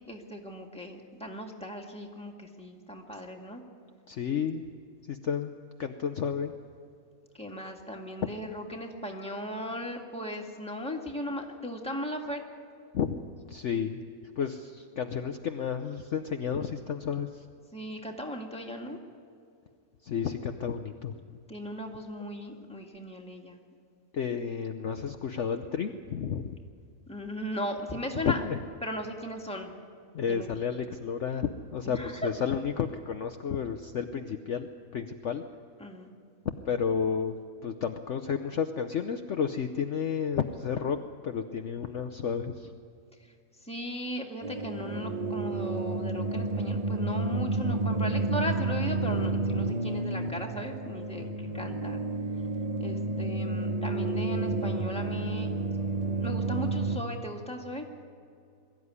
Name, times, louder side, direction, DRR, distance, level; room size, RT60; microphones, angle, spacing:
voice 1, 0.1-3.6 7.4-12.4 17.7-19.0 21.5-23.6 27.1-28.4 28.8-29.8 30.3-30.6 31.8-32.3 35.8-36.1 43.7-51.3 51.5-52.0 52.8-55.5 56.2-57.9, equal, 5° left, 1 dB, 2.0 m, -37 dB
voice 2, 4.1-4.6 5.1-5.5 5.8-6.5 12.9-13.2 13.5-14.0 14.4-17.4 20.0-21.2 24.1-26.5 28.2-28.6 30.1-35.4 36.6-37.3 37.6-41.0 41.2-42.7 51.2-51.6, left 7 dB, 55° left, 6 dB, 1.0 m, -31 dB
sound 1, 44.4-57.0, right 3 dB, 30° right, 1.1 m, -30 dB
22.5 x 14.0 x 9.7 m, 2.4 s
omnidirectional pair, 1.6 m